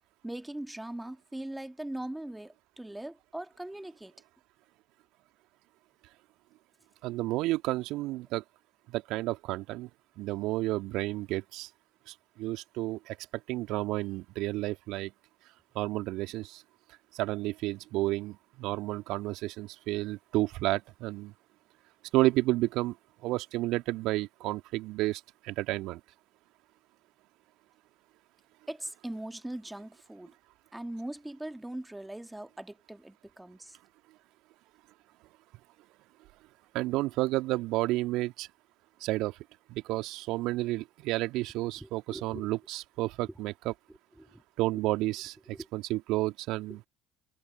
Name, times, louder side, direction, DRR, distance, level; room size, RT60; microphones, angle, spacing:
voice 1, 0.2-4.1 28.7-30.3 30.7-33.8 41.8-42.5 44.2-44.4 45.5-45.7, right 1 dB, 5° right, 1.9 m, -40 dB
voice 2, 7.0-8.4 8.9-9.9 10.2-11.7 12.1-13.2 13.5-15.1 15.7-16.6 17.1-21.3 22.1-23.0 23.2-26.0 36.7-38.5 39.0-39.4 39.7-43.7 44.6-46.8, right 18 dB, 60° right, 2.3 m, -31 dB
figure-of-eight pair, 65°, 0 cm